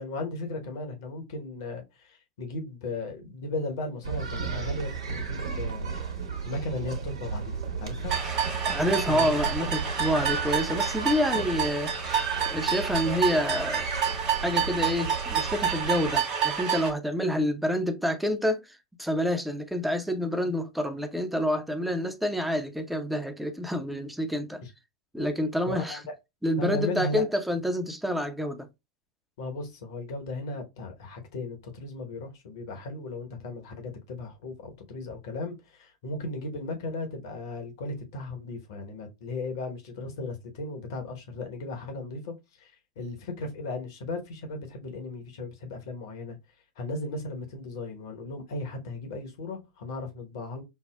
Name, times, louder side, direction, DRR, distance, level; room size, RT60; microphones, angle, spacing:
voice 1, 0.0-6.0 6.4-7.5 7.8-8.1 9.1-9.3 9.6-9.7 24.6-24.7 25.2-25.3 25.6-26.0 26.6-27.3 29.4-46.4 46.8-50.6, left 2 dB, 60° left, 1.0 m, -36 dB
sound 1, 4.0-16.1, right 5 dB, 70° right, 1.1 m, -34 dB
sound 2, 8.1-16.9, right 7 dB, 35° right, 1.2 m, -29 dB
voice 2, 8.7-13.9 14.3-24.6 25.1-26.0 26.4-28.7, equal, 5° right, 0.6 m, -28 dB
5.5 x 2.0 x 2.2 m
figure-of-eight pair, 90°, 2 cm